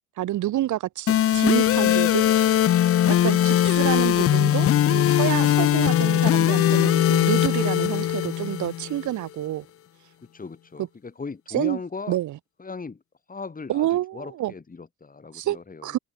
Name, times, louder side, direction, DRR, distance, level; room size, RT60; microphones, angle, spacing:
voice 1, 0.2-2.7 3.1-9.7 10.8-10.9 11.5-11.8 12.1-12.4 13.7-14.5 15.3-16.0, right 14 dB, 75° right, 1.2 m, -28 dB
sound 1, 1.1-9.1, left 11 dB, 50° left, 0.6 m, -20 dB
voice 2, 10.3-12.2 12.6-13.0 13.3-13.9 14.1-15.9, left 4 dB, 30° left, 3.5 m, -37 dB
cardioid pair, 90°, 30 cm